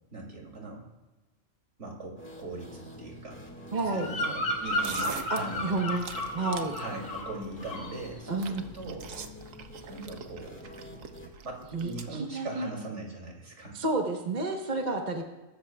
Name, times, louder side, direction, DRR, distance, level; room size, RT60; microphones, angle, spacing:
voice 1, 0.1-0.9 1.8-3.4 3.8-5.7 6.8-9.1 9.9-10.6 11.4-13.8, right 2 dB, 60° right, 0 dB, 3.1 m, -40 dB
sound 1, 2.2-11.3, equal, 10° left, 2.0 m, -47 dB
voice 2, 3.7-4.1 5.3-6.1 6.3-6.8 8.3-8.6 11.7-12.7 13.7-15.2, right 3 dB, 35° right, 2 dB, 1.2 m, -30 dB
Bird vocalization bird call bird song, 3.8-7.4 7.6-8.0, left 1 dB, 75° left, 2.2 m, -33 dB
sound 2, 4.6-12.0, right 6 dB, 80° right, 1.3 m, -44 dB
23.0 x 13.0 x 2.4 m, 1.2 s
omnidirectional pair, 1.3 m